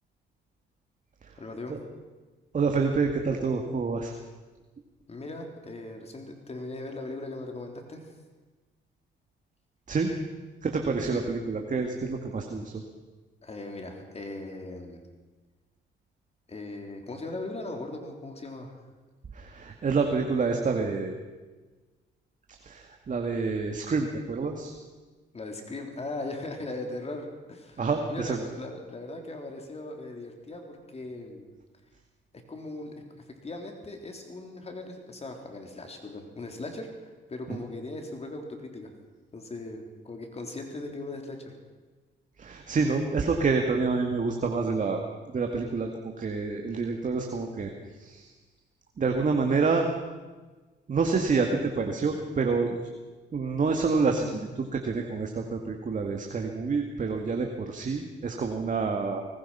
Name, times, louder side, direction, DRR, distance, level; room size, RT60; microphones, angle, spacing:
voice 1, 1.4-1.8 5.1-8.1 11.1-11.2 13.4-15.0 16.5-18.8 25.3-27.8 28.1-31.5 32.3-38.9 39.3-41.5, left 2 dB, 30° left, 3 dB, 3.6 m, -39 dB
voice 2, 2.5-4.1 9.9-10.1 10.6-12.8 19.3-21.1 22.6-24.7 27.8-28.4 37.5-37.6 42.4-45.0 45.3-48.3 49.0-49.9 50.9-52.9 53.3-59.2, right 4 dB, 40° right, 3 dB, 2.1 m, -28 dB
23.5 x 19.5 x 5.7 m, 1.3 s
cardioid pair, 90°, 20 cm